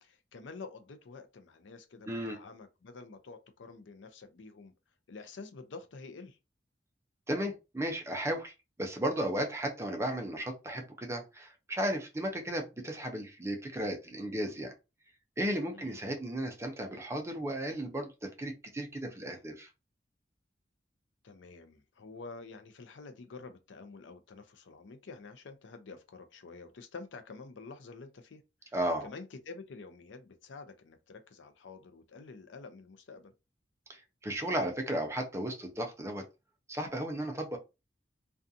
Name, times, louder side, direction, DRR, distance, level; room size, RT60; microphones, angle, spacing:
voice 1, 0.0-4.7 5.1-6.4 15.7-16.0 21.2-28.4 28.7-33.3, left 4 dB, 85° left, 0.5 m, -48 dB
voice 2, 2.1-2.4 7.3-8.5 8.8-14.7 15.4-19.7 28.7-29.1 33.9-36.2 36.7-37.6, right 1 dB, 15° right, 0.5 m, -34 dB
2.5 x 2.3 x 2.6 m
head